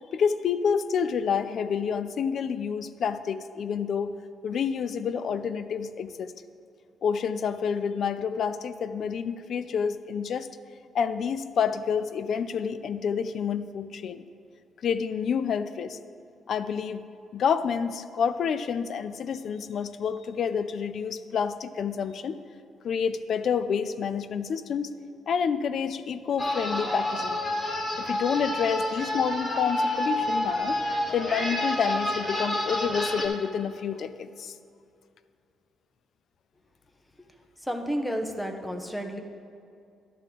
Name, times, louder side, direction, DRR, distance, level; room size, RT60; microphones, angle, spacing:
voice 1, 0.1-4.1 4.4-6.3 7.0-10.5 10.9-14.2 14.8-16.0 16.5-17.0 17.3-22.4 22.8-24.9 25.3-27.4 28.0-30.8 31.1-34.6, left 7 dB, 60° left, 12 dB, 0.4 m, -28 dB
sound 1, 26.4-33.3, left 1 dB, 35° left, 1.3 m, -29 dB
voice 2, 37.6-39.2, equal, 5° left, 4 dB, 0.9 m, -31 dB
11.0 x 3.8 x 7.5 m, 2.4 s
cardioid pair, 90°, 0 cm